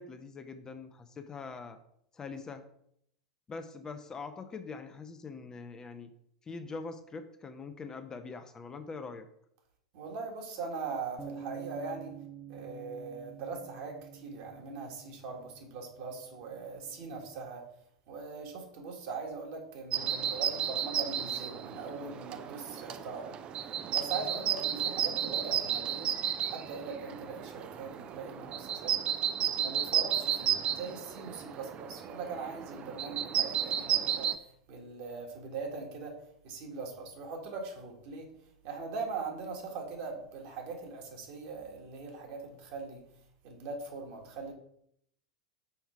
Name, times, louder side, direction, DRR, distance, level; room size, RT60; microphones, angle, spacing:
voice 1, 0.0-1.8 2.1-2.6 3.5-6.1 6.4-9.3, left 4 dB, 20° left, 7 dB, 0.6 m, -43 dB
voice 2, 9.9-12.2 12.5-17.6 18.1-23.4 23.9-26.1 26.5-29.0 29.5-34.3 34.7-36.2 36.4-38.3 38.6-43.0 43.4-44.5, right 4 dB, 55° right, 1 dB, 1.8 m, -41 dB
sound 1, 11.2-17.4, right 8 dB, 5° right, 1.0 m, -49 dB
sound 2, 19.9-34.4, right 10 dB, 35° right, 0.5 m, -33 dB
5.8 x 4.6 x 4.5 m, 0.71 s
figure-of-eight pair, 85°, 3 cm